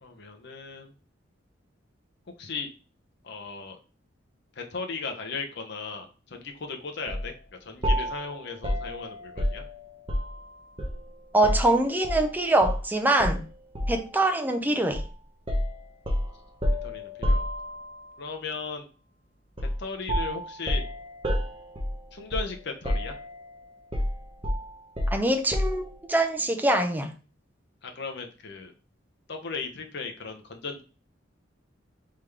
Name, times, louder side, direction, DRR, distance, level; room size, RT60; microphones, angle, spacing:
voice 1, 0.0-0.9 2.4-2.7 3.2-3.8 4.6-7.3 7.6-9.6 16.8-17.4 18.2-18.9 19.8-20.8 22.1-23.2 27.8-28.7 29.3-30.8, left 4 dB, 60° left, 0.8 m, -36 dB
sound 1, 7.1-7.3 7.8-10.4 10.8-12.3 12.6-12.8 13.2-14.1 14.9-15.1 15.5-18.0 19.6-19.8 20.1-22.6 22.8-23.5 23.9-25.9, equal, 30° right, 0.9 m, -29 dB
voice 2, 11.3-13.4 13.9-15.0 25.1-27.1, right 1 dB, 10° right, 0.5 m, -24 dB
3.6 x 3.4 x 3.3 m
head